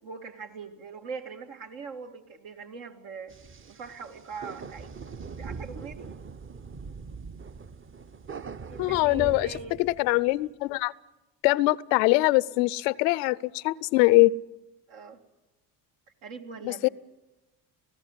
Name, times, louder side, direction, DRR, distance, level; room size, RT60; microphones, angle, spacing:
voice 1, 0.0-3.3 3.7-4.9 5.4-6.1 8.7-9.8 14.9-15.2 16.2-16.9, right 5 dB, 75° right, 2.3 m, -41 dB
sound 1, 3.3-10.4, right 5 dB, 25° right, 0.7 m, -42 dB
voice 2, 8.8-10.9 11.4-14.3 16.6-16.9, left 20 dB, 85° left, 0.6 m, -23 dB
19.5 x 15.5 x 9.7 m
hypercardioid pair, 60°, 48 cm